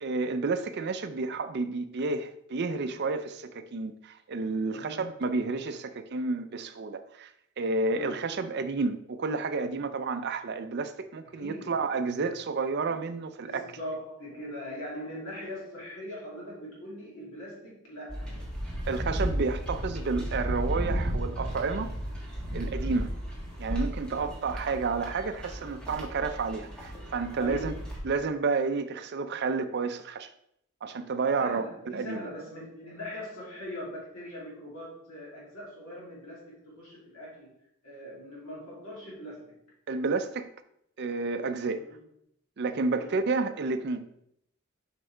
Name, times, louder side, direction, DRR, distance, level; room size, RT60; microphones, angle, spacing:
voice 1, 0.0-7.3 7.6-13.6 18.9-21.9 22.5-23.1 23.6-27.7 28.0-30.3 30.8-32.2 39.9-40.5 41.0-41.8 42.6-44.0, right 4 dB, 50° right, 0.5 m, -30 dB
voice 2, 4.7-5.0 7.9-8.2 11.3-11.8 13.4-18.3 22.7-23.2 23.9-24.3 27.4-27.8 31.4-37.5 37.8-39.5 41.7-42.0 42.9-43.2, left 1 dB, 70° left, 3.0 m, -41 dB
sound 1, 18.1-28.0, equal, 5° left, 1.6 m, -34 dB
7.4 x 5.2 x 3.4 m
head